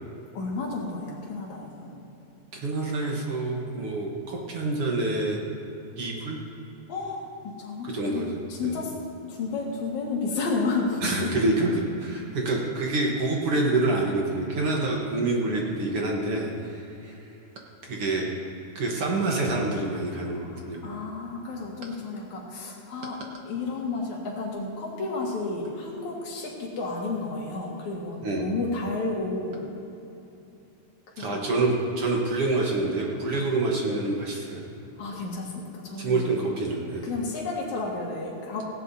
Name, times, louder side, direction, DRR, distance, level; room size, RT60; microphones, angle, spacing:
voice 1, 0.3-2.0 6.9-8.2 8.5-8.9 9.3-11.3 20.5-23.2 23.4-29.6 31.2-31.4 35.0-36.3 37.0-38.6, left 3 dB, 75° left, -2 dB, 3.2 m, -31 dB
voice 2, 2.5-5.4 6.0-6.4 7.8-8.8 11.0-17.2 17.8-18.3 18.8-20.9 28.2-28.6 31.2-34.6 36.0-37.1, right 2 dB, 55° right, -1 dB, 1.9 m, -27 dB
17.5 x 17.0 x 2.8 m, 3.0 s
omnidirectional pair, 3.4 m